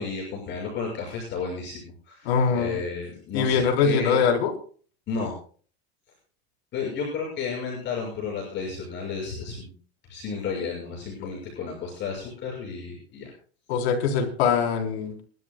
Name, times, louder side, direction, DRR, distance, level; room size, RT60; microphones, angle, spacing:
voice 1, 0.0-4.2 5.1-5.4 6.7-9.7 10.1-13.3, left 5 dB, 35° left, -3 dB, 6.3 m, -32 dB
voice 2, 2.3-2.8 3.3-4.5 13.7-15.1, left 6 dB, 75° left, 2 dB, 3.8 m, -22 dB
28.5 x 12.5 x 2.3 m, 0.43 s
supercardioid pair, 145°, 32 cm